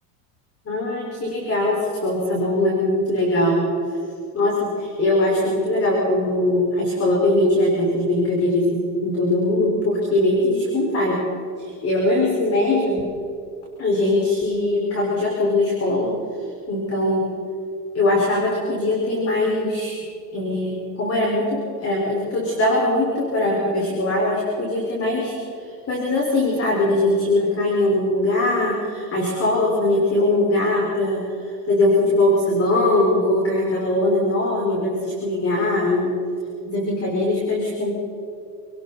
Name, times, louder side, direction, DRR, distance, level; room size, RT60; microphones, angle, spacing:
voice 1, 0.7-3.7 4.3-11.3 11.6-13.1 13.8-16.2 16.7-17.3 17.9-20.0 20.3-36.1 36.6-37.9, left 1 dB, 30° left, -2 dB, 6.0 m, -21 dB
29.5 x 19.5 x 4.5 m, 2.6 s
supercardioid pair, 115°, 48 cm